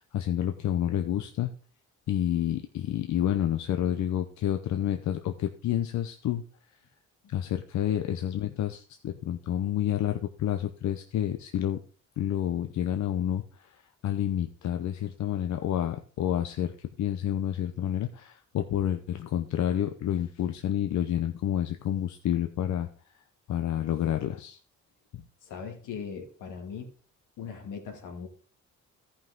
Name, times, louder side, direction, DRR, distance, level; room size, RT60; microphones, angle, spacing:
voice 1, 0.1-1.5 2.1-6.4 7.3-11.8 12.2-13.7 14.0-22.9 23.5-24.6 25.1-25.2, left 11 dB, 70° left, 7 dB, 0.8 m, -29 dB
voice 2, 25.4-26.9 27.4-28.3, left 6 dB, 85° left, 2 dB, 2.3 m, -39 dB
14.0 x 5.7 x 3.7 m, 0.39 s
cardioid pair, 90°, 30 cm